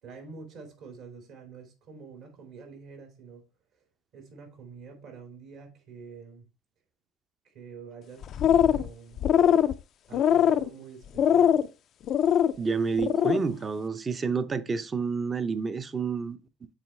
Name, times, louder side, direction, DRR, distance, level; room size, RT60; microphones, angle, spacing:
voice 1, 0.0-3.4 4.1-6.4 7.4-9.2 10.1-11.6, right 5 dB, 65° right, 2.9 m, -46 dB
sound 1, 8.2-8.9 9.2-9.7 10.1-10.7 11.2-11.7 12.1-12.5 12.9-13.4, left 9 dB, 55° left, 0.4 m, -22 dB
voice 2, 12.6-16.4, right 5 dB, 30° right, 0.7 m, -29 dB
7.6 x 3.9 x 3.3 m
hypercardioid pair, 75°, 0 cm